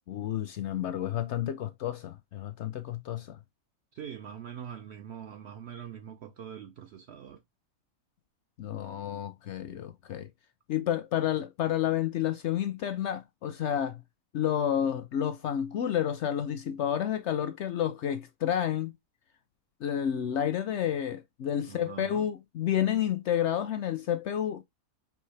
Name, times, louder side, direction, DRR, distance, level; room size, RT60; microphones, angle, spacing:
voice 1, 0.1-3.4 8.6-10.3 10.7-14.0 14.3-18.9 19.8-24.6, left 10 dB, 65° left, 0.7 m, -30 dB
voice 2, 3.9-7.4 21.7-22.3, right 8 dB, 65° right, 0.6 m, -43 dB
4.6 x 3.0 x 3.2 m
omnidirectional pair, 1.5 m